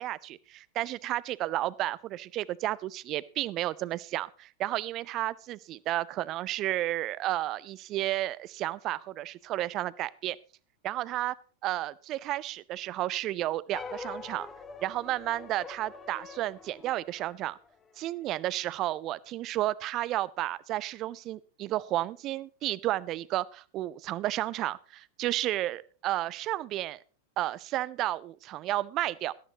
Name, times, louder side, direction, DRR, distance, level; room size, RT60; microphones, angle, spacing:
voice 1, 0.0-10.4 10.8-11.3 11.6-14.5 14.8-17.6 18.0-27.0 27.4-29.3, right 15 dB, 35° right, 19 dB, 0.6 m, -32 dB
sound 1, 13.7-18.3, left 4 dB, 20° left, 1.3 m, -45 dB
18.5 x 13.0 x 2.9 m, 0.37 s
figure-of-eight pair, 90°, 0 cm